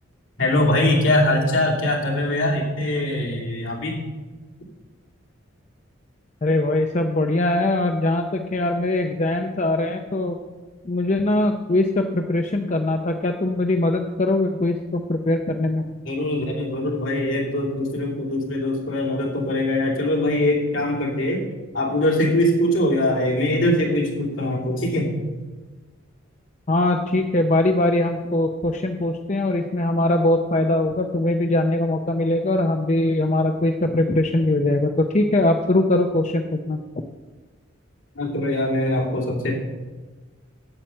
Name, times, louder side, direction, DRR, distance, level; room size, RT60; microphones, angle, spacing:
voice 1, 0.4-4.0 16.0-21.5 21.7-25.1 38.1-39.5, left 1 dB, 70° left, -2 dB, 2.8 m, -22 dB
voice 2, 6.4-10.4 10.8-15.8 26.7-36.8, left 2 dB, 35° left, 4 dB, 0.6 m, -21 dB
8.9 x 8.1 x 7.6 m, 1.3 s
head